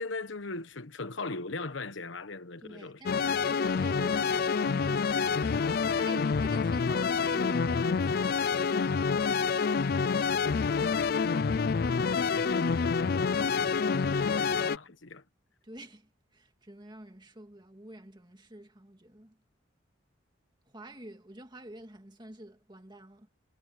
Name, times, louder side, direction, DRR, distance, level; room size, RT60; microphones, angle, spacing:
voice 1, 0.0-3.0 11.6-15.2, left 3 dB, 80° left, 1.2 m, -40 dB
voice 2, 2.6-8.3 15.6-19.4 20.7-23.3, right 1 dB, 25° right, 2.1 m, -48 dB
sound 1, 3.1-14.8, left 5 dB, 50° left, 0.4 m, -27 dB
head